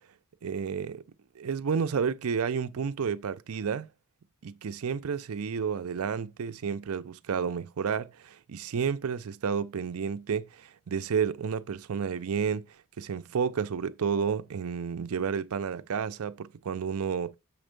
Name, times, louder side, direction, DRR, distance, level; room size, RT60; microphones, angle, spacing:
voice 1, 0.4-1.0 1.4-3.9 4.4-12.6 13.0-17.4, right 6 dB, 75° right, 0.5 m, -31 dB
7.0 x 4.3 x 5.1 m
head